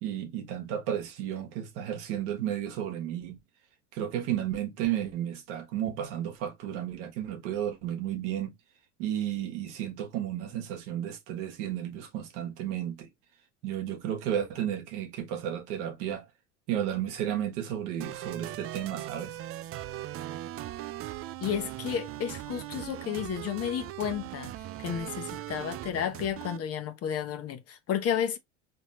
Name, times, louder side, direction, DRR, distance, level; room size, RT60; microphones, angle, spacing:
voice 1, 0.0-3.4 3.9-8.5 9.0-13.1 13.6-16.3 16.7-19.4, right 10 dB, 70° right, 1.4 m, -33 dB
sound 1, 18.0-26.6, right 14 dB, 40° right, 0.5 m, -39 dB
voice 2, 21.4-24.5 24.8-28.4, left 9 dB, 40° left, 1.0 m, -32 dB
4.3 x 3.3 x 3.0 m
hypercardioid pair, 80°, 37 cm